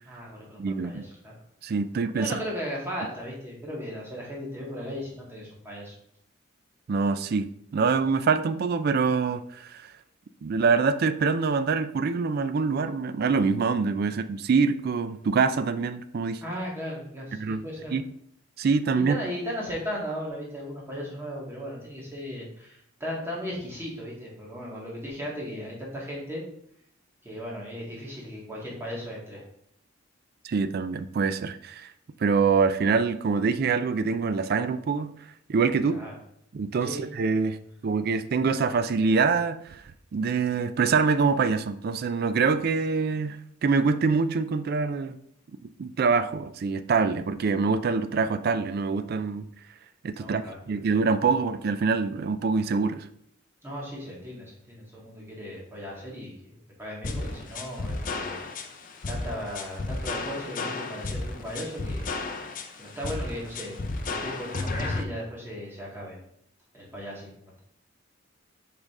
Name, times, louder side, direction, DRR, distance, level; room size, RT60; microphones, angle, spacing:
voice 1, 0.1-1.3 2.1-5.9 16.4-18.0 19.1-26.4 27.2-29.4 35.9-36.1 36.8-37.0 50.2-50.6 53.6-58.4 59.1-62.1 62.8-63.8 64.0-66.2 66.7-67.6, equal, 10° right, -4 dB, 1.8 m, -36 dB
voice 2, 0.6-1.1 1.6-2.3 6.9-9.9 10.4-16.4 17.3-17.6 17.9-18.0 18.6-19.2 30.4-31.9 32.2-35.1 35.5-36.0 36.5-37.6 37.8-39.8 40.1-45.1 45.6-49.5 50.0-53.1, right 5 dB, 50° right, 12 dB, 0.3 m, -25 dB
sound 1, 57.0-65.0, left 3 dB, 40° left, 0.6 m, -33 dB
5.2 x 5.0 x 3.7 m, 0.70 s
head